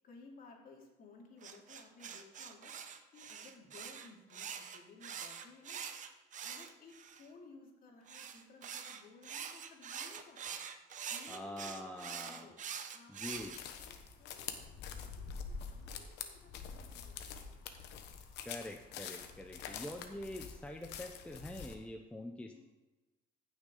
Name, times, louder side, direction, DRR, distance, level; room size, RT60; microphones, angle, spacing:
voice 1, 0.0-5.8 6.4-10.5 11.1-12.6 12.9-17.8 20.1-20.3 22.5-22.6, left 4 dB, 60° left, 0 dB, 2.6 m, -58 dB
sound 1, 1.4-7.3 8.1-13.6, right 7 dB, 50° right, 0.9 m, -45 dB
voice 2, 11.3-12.5 13.1-13.6 18.4-22.6, left 1 dB, 5° left, 3 dB, 0.7 m, -45 dB
sound 2, 13.2-21.8, left 6 dB, 90° left, 1.1 m, -46 dB
15.0 x 6.3 x 3.9 m, 1.1 s
cardioid pair, 110°, 17 cm